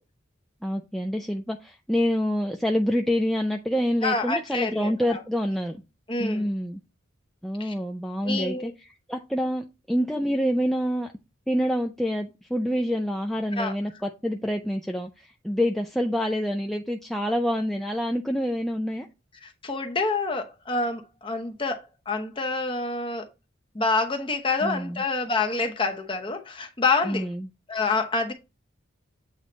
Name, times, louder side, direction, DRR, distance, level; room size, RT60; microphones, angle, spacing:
voice 1, 0.6-5.8 6.2-6.8 7.4-8.7 9.1-11.1 11.5-19.1 24.6-25.0 27.0-27.5, equal, ahead, 0.3 m, -27 dB
voice 2, 4.0-5.2 6.1-6.5 7.6-7.7 8.2-8.7 13.6-13.7 19.4-23.3 23.7-27.3 27.7-28.3, left 3 dB, 25° left, 0.8 m, -27 dB
8.1 x 3.2 x 3.9 m
head